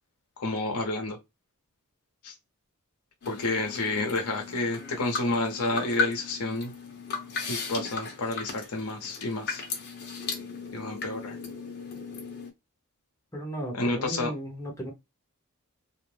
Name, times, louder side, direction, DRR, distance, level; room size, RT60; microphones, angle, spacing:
voice 1, 0.4-1.2 2.2-2.3 3.3-6.7 7.5-9.6 10.7-11.4 13.7-14.3, left 2 dB, 80° left, 0.8 m, -30 dB
sound 1, 3.2-12.5, left 4 dB, 50° left, 0.8 m, -36 dB
voice 2, 13.3-14.9, right 1 dB, 15° left, 0.7 m, -35 dB
2.5 x 2.1 x 3.1 m
head